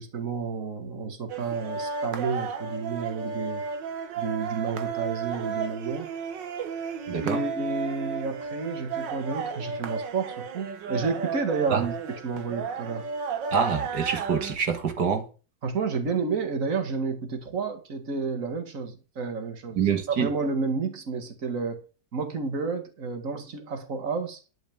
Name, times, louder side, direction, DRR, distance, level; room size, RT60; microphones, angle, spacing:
voice 1, 0.0-3.6 4.2-6.1 7.2-13.1 15.6-19.8 20.1-21.8 22.1-24.4, right 4 dB, 50° right, 2.2 m, -30 dB
sound 1, 1.3-14.6, right 6 dB, 85° right, 1.8 m, -33 dB
voice 2, 7.1-7.4 11.7-11.9 13.5-15.3 19.7-20.3, right 6 dB, 65° right, 2.2 m, -26 dB
12.0 x 5.2 x 8.7 m
omnidirectional pair, 1.9 m